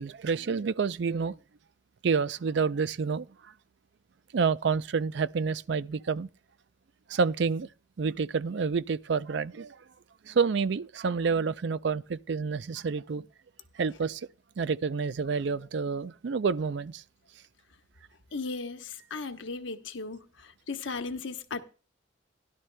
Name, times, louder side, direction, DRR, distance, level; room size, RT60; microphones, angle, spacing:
voice 1, 0.0-1.3 2.0-3.3 4.3-6.3 7.1-7.7 8.0-9.8 10.3-13.3 13.8-14.3 14.6-17.0, right 5 dB, 60° right, 0.4 m, -28 dB
voice 2, 18.3-20.2 20.7-21.6, left 4 dB, 70° left, 1.0 m, -36 dB
16.5 x 11.5 x 2.2 m
head